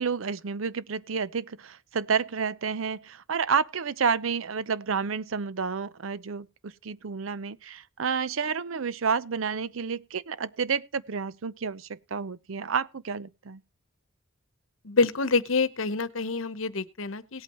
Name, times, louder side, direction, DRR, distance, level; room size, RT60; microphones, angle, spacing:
voice 1, 0.0-13.6, right 6 dB, 85° right, 0.6 m, -30 dB
voice 2, 14.8-17.4, left 4 dB, 80° left, 0.9 m, -27 dB
18.0 x 8.6 x 3.0 m
head